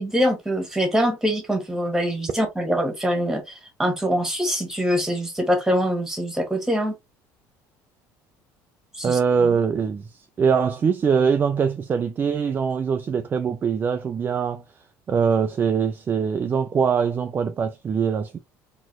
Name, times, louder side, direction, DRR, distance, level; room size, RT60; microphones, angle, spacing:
voice 1, 0.0-3.5 3.8-7.0 8.9-9.2, equal, 5° right, 1.6 m, -23 dB
voice 2, 9.0-14.6 15.1-18.4, right 6 dB, 30° right, 0.4 m, -22 dB
4.0 x 3.1 x 2.9 m
cardioid pair, 130°, 7 cm